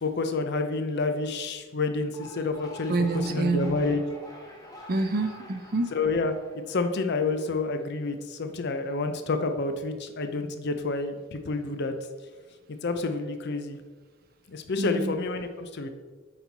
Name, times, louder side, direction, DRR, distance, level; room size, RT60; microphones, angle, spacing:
voice 1, 0.0-4.0 5.9-6.3 6.7-11.9 12.8-13.8 14.5-15.9, left 3 dB, 55° left, 7 dB, 0.6 m, -29 dB
sound 1, 2.0-7.3, left 1 dB, 20° left, 1.1 m, -46 dB
voice 2, 2.9-3.8 4.9-5.9 14.8-15.1, right 3 dB, 45° right, 8 dB, 0.6 m, -27 dB
8.8 x 4.3 x 4.0 m, 1.4 s
head